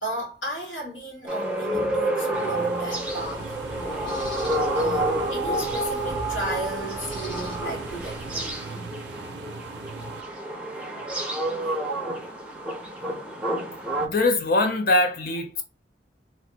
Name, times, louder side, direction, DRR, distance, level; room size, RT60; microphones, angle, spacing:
voice 1, 0.0-4.2 4.7-8.8 11.8-12.3, right 1 dB, 80° left, 1.5 m, -34 dB
sound 1, 1.3-14.1, right 1 dB, 5° right, 0.5 m, -29 dB
sound 2, 2.3-10.2, right 5 dB, 60° right, 0.4 m, -40 dB
sound 3, 2.8-8.6, equal, 25° left, 0.9 m, -43 dB
voice 2, 13.8-15.6, left 2 dB, 50° left, 0.5 m, -23 dB
3.2 x 2.5 x 2.7 m
head